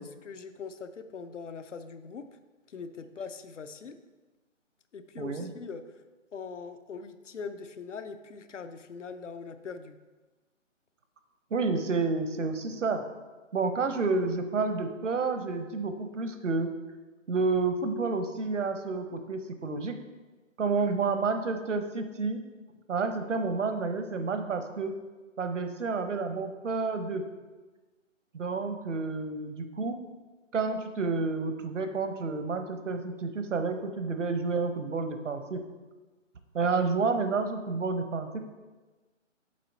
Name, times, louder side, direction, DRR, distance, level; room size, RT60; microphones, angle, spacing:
voice 1, 0.2-2.3 2.7-4.0 4.9-6.0 6.3-10.0, left 5 dB, 70° left, 10 dB, 0.7 m, -41 dB
voice 2, 5.2-5.5 11.5-13.0 13.5-16.7 17.3-20.0 20.6-22.4 22.9-24.9 25.4-27.2 28.3-30.0 30.5-35.6 36.5-38.4, right 4 dB, 70° right, 8 dB, 0.9 m, -30 dB
7.5 x 4.1 x 4.1 m, 1.2 s
figure-of-eight pair, 145°, 38 cm